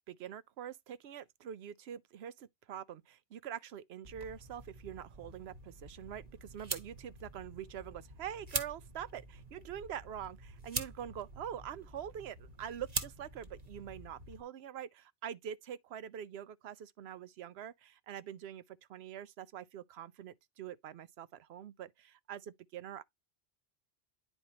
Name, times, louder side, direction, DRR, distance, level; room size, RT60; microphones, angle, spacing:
voice 1, 0.1-23.0, right 9 dB, 75° right, 0.9 m, -45 dB
sound 1, 4.0-14.4, right 3 dB, 40° right, 1.1 m, -44 dB
10.0 x 4.4 x 2.8 m
omnidirectional pair, 1.1 m